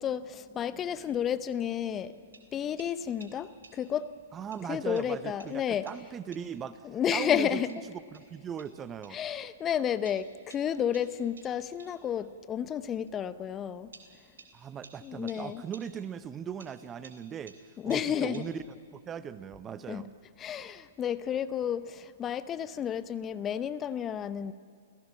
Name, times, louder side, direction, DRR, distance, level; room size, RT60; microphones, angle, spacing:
voice 1, 0.0-2.1 2.5-4.1 4.7-5.9 6.8-7.7 9.1-13.9 15.0-15.6 17.8-18.4 19.9-20.1 20.4-24.5, left 9 dB, 20° left, 14 dB, 0.8 m, -31 dB
sound 1, 2.0-4.1 4.5-6.7 7.2-9.3 10.0-12.1 13.1-13.2 13.9-16.2 16.6-18.9, right 5 dB, 75° right, 3.6 m, -56 dB
voice 2, 4.3-6.8 7.1-7.8 8.1-9.2 14.5-17.6 17.8-18.6 18.9-20.1, right 8 dB, 20° right, 14 dB, 0.7 m, -39 dB
28.5 x 17.5 x 7.4 m, 2.2 s
figure-of-eight pair, 115°, 0 cm